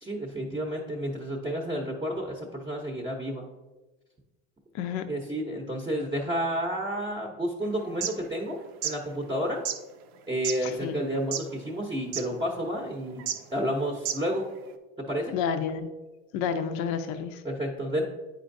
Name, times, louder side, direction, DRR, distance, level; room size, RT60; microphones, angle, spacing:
voice 1, 0.0-3.4 5.1-9.6 10.3-13.2 13.5-14.5 15.0-15.3 17.4-18.0, equal, 15° right, -1 dB, 0.7 m, -31 dB
sound 1, 7.8-8.1 8.7-8.9 9.6-9.8 10.4-10.6 11.2-11.5 11.8-11.9 12.1-12.3 13.2-13.4 13.9-14.3, right 9 dB, 85° right, 0.6 m, -30 dB
voice 2, 10.6-11.0 15.3-15.9 16.3-17.4, left 7 dB, 70° left, 9 dB, 0.6 m, -30 dB
9.2 x 4.3 x 2.6 m, 1.2 s
supercardioid pair, 115°, 30 cm